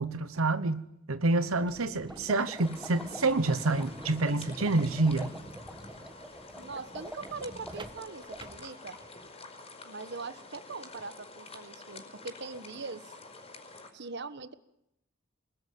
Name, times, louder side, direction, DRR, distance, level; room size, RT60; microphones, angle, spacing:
voice 1, 0.0-5.3, right 2 dB, 85° right, 1.1 m, -28 dB
sound 1, 1.6-9.3, right 1 dB, 20° right, 1.4 m, -48 dB
sound 2, 2.1-8.6, right 1 dB, 5° right, 1.1 m, -47 dB
sound 3, 2.6-13.9, left 3 dB, 30° left, 5.1 m, -48 dB
voice 2, 6.6-9.0 9.8-13.1 13.9-14.5, right 4 dB, 55° right, 1.4 m, -41 dB
29.0 x 21.0 x 9.5 m
head